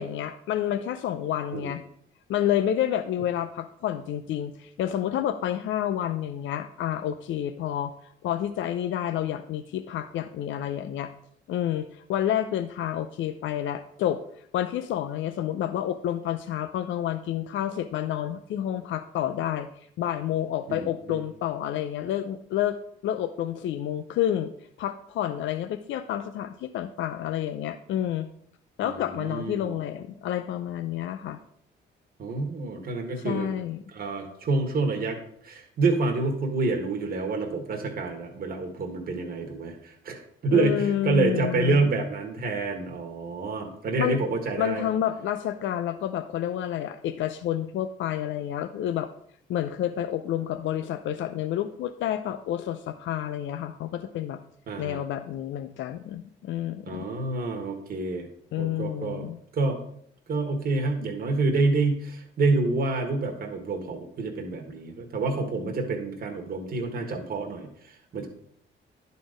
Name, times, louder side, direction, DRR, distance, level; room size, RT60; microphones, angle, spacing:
voice 1, 0.0-1.8 2.3-11.1 11.5-14.2 14.5-19.7 20.0-22.8 23.0-24.5 24.8-28.3 28.8-31.4 33.2-33.8 40.5-41.8 44.0-44.2 44.6-49.1 49.5-54.4 54.8-57.1 58.5-59.4, left 11 dB, 70° left, 9 dB, 0.5 m, -29 dB
voice 2, 20.7-21.2 28.8-29.8 32.2-33.5 33.9-35.2 35.4-44.8 54.7-55.0 56.8-58.3 58.6-59.2 59.5-59.8 60.3-68.3, right 3 dB, 50° right, 2 dB, 1.4 m, -28 dB
10.5 x 4.1 x 5.0 m, 0.68 s
cardioid pair, 90°, 20 cm